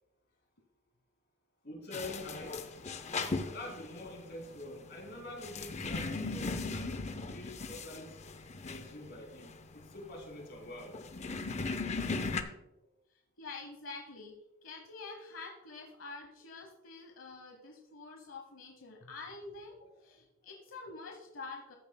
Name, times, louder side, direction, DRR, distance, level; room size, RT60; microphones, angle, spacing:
voice 1, 1.6-8.2 8.6-11.0 12.8-12.9 19.0-19.1 20.0-20.1 20.4-20.5, left 1 dB, 55° left, 0 dB, 3.1 m, -46 dB
sound 1, 1.9-12.4, left 3 dB, 35° left, 0.6 m, -38 dB
voice 2, 13.4-14.3 14.6-21.8, left 3 dB, 85° left, 2 dB, 1.0 m, -47 dB
14.0 x 8.9 x 2.2 m, 0.96 s
head